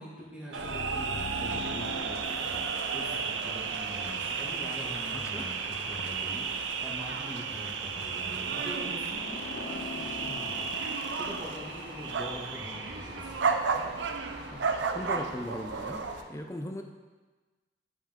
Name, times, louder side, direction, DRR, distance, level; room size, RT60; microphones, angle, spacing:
voice 1, 0.0-2.6 2.9-13.6, equal, 5° right, -6 dB, 1.6 m, -43 dB
sound 1, 0.5-16.2, right 5 dB, 85° right, 0.5 m, -33 dB
sound 2, 0.6-4.0 9.1-12.6, left 3 dB, 80° left, 0.5 m, -42 dB
sound 3, 1.8-16.2, left 1 dB, 45° right, 2.4 m, -46 dB
voice 2, 5.1-5.5 14.5-16.0 16.3-16.8, left 1 dB, 15° left, 5 dB, 0.5 m, -38 dB
10.0 x 5.4 x 3.6 m, 1.3 s
head